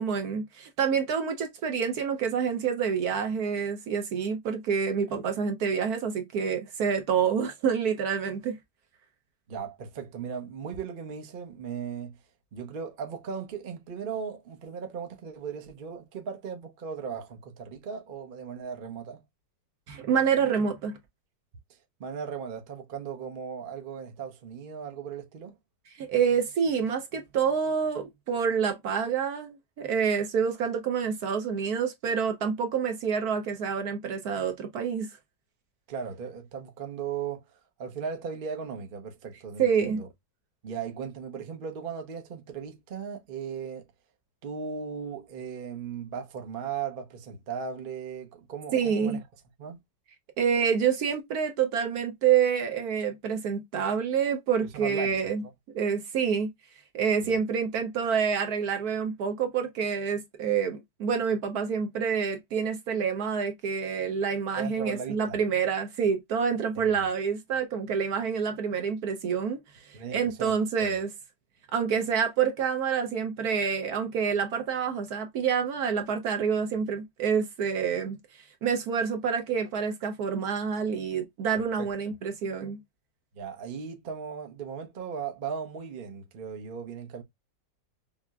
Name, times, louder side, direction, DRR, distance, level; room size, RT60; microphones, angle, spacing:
voice 1, 0.0-8.6 19.9-21.0 26.0-35.1 39.6-40.0 48.7-49.2 50.4-55.4 55.7-56.5 56.9-71.1 71.7-78.2 78.6-82.8, right 6 dB, 65° right, 1.1 m, -27 dB
voice 2, 9.5-12.2 12.5-19.2 21.7-25.6 35.9-40.1 40.6-43.8 44.4-49.2 49.6-49.8 54.7-55.3 57.2-57.4 64.6-65.4 66.8-67.0 69.9-70.5 70.8-71.0 81.6-81.9 83.3-87.2, right 6 dB, 45° right, 0.7 m, -37 dB
5.7 x 2.1 x 2.3 m
omnidirectional pair, 2.0 m